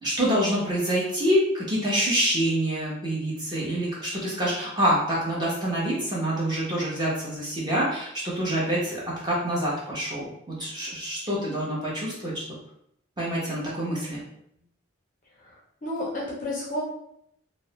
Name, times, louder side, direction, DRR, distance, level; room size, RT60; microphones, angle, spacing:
voice 1, 0.0-12.3 13.2-14.2, equal, 20° right, -6 dB, 0.7 m, -26 dB
voice 2, 15.4-16.8, left 1 dB, 40° left, -4 dB, 0.4 m, -32 dB
2.3 x 2.0 x 2.8 m, 0.73 s
head